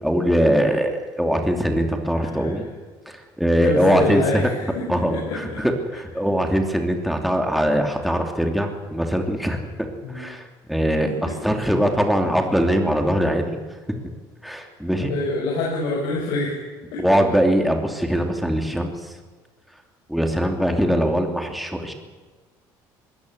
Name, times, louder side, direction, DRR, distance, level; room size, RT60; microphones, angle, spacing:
voice 1, 0.0-2.7 3.1-4.5 4.9-11.1 11.4-13.6 14.4-15.1 17.0-19.1 20.1-21.9, equal, ahead, 3 dB, 2.9 m, -22 dB
voice 2, 2.2-2.5 3.6-4.8 5.1-5.6 10.0-10.2 11.1-11.3 15.1-17.0, left 3 dB, 85° left, -3 dB, 6.4 m, -26 dB
21.5 x 17.5 x 8.1 m, 1.4 s
cardioid pair, 130°, 9 cm